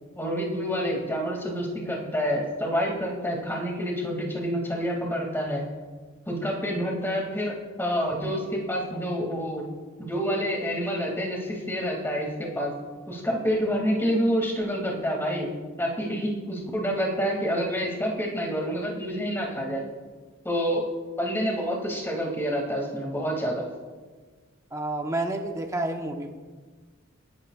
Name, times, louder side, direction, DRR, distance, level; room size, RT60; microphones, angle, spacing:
voice 1, 0.2-5.6 6.3-9.7 10.0-12.7 13.1-15.5 15.8-19.8 20.4-20.8 21.2-23.6, equal, 10° left, -1 dB, 2.6 m, -28 dB
voice 2, 24.7-26.3, right 2 dB, 15° right, 3 dB, 1.1 m, -29 dB
28.0 x 11.5 x 2.5 m, 1.4 s
head